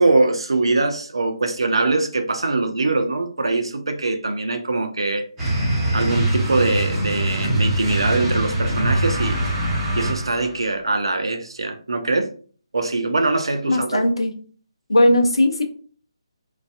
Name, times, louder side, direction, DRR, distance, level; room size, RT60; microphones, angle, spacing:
voice 1, 0.0-5.3 5.9-9.4 9.9-12.3 12.7-14.0, right 3 dB, 65° right, 0.5 m, -22 dB
sound 1, 5.4-10.5, right 1 dB, 10° right, 0.9 m, -23 dB
voice 2, 13.7-14.3 14.9-15.6, left 1 dB, 70° left, 0.5 m, -17 dB
2.6 x 2.3 x 2.2 m
figure-of-eight pair, 145°, 3 cm